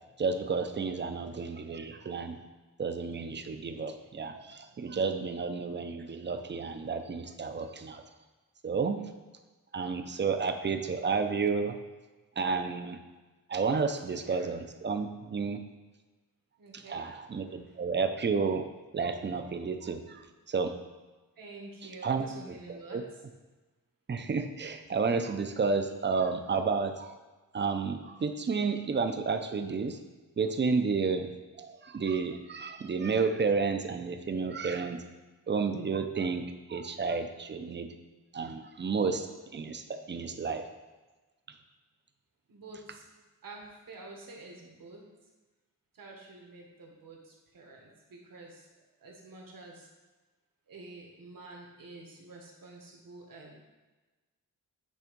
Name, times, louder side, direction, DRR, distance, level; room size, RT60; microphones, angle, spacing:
voice 1, 0.2-2.4 2.8-8.0 8.6-9.0 9.7-11.8 12.4-13.0 13.5-15.6 16.9-18.6 18.9-20.7 22.0-22.2 22.9-23.0 24.1-27.1 27.5-30.0 30.4-31.3 31.6-35.0 35.5-36.4 36.7-37.9 38.3-39.3 39.5-40.6, right 5 dB, 35° right, 7 dB, 0.5 m, -31 dB
voice 2, 16.6-17.1 17.5-17.8 21.4-23.0 42.5-43.1 43.4-45.0 45.9-48.7 49.0-49.9 50.7-53.5, right 2 dB, 80° right, 0 dB, 1.5 m, -48 dB
8.5 x 3.5 x 5.2 m, 1.2 s
wide cardioid pair, 150°, 34 cm